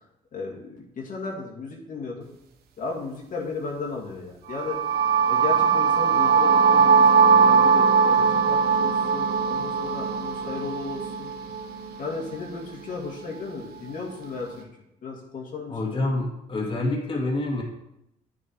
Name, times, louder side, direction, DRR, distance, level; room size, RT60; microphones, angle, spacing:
voice 1, 0.3-2.3 2.8-4.8 5.3-11.3 12.0-14.7 15.0-15.8, left 4 dB, 55° left, -1 dB, 2.4 m, -35 dB
sound 1, 4.5-12.4, right 6 dB, 80° right, 1.3 m, -20 dB
voice 2, 15.7-17.6, left 2 dB, 35° left, -1 dB, 2.5 m, -27 dB
9.7 x 6.8 x 4.7 m, 0.83 s
cardioid pair, 85°, 16 cm